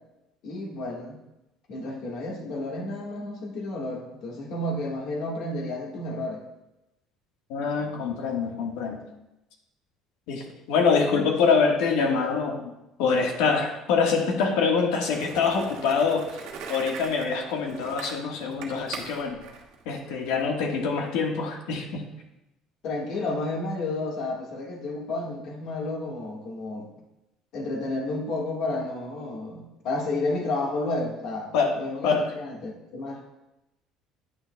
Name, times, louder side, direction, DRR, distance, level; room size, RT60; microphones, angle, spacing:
voice 1, 0.4-1.2 1.7-6.4 22.8-26.9 27.5-33.2, left 2 dB, 50° left, 0 dB, 1.5 m, -31 dB
voice 2, 7.5-9.0 10.3-12.7 13.0-16.4 16.7-19.4 19.8-22.1 31.5-31.8 32.0-32.3, left 5 dB, 85° left, 2 dB, 1.3 m, -25 dB
Skateboard, 15.0-20.5, right 5 dB, 70° right, 1.2 m, -41 dB
9.6 x 8.8 x 2.2 m, 0.92 s
cardioid pair, 170°, 0 cm